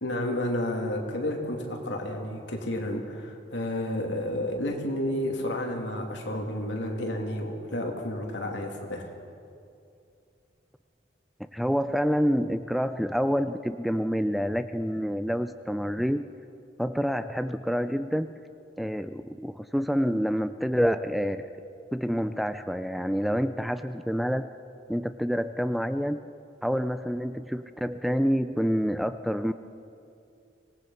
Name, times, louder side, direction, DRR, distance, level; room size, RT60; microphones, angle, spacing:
voice 1, 0.0-9.0, left 1 dB, 75° left, 1 dB, 2.9 m, -31 dB
voice 2, 11.5-16.3 16.8-18.3 18.8-21.4 21.9-24.5 24.9-26.2 26.6-29.5, equal, ahead, 10 dB, 0.4 m, -27 dB
25.0 x 18.5 x 5.8 m, 2.5 s
head